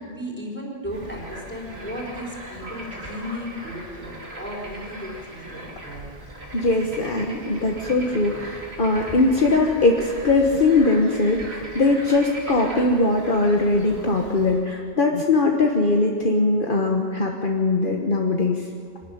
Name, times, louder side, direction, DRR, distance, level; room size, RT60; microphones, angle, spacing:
voice 1, 0.0-6.1, equal, 10° left, -2 dB, 4.3 m, -35 dB
Bird / Frog, 0.9-14.6, right 1 dB, 75° right, 3.0 m, -39 dB
voice 2, 6.5-18.6, left 2 dB, 55° left, 1 dB, 1.5 m, -21 dB
24.5 x 12.5 x 9.9 m, 2.3 s
omnidirectional pair, 1.1 m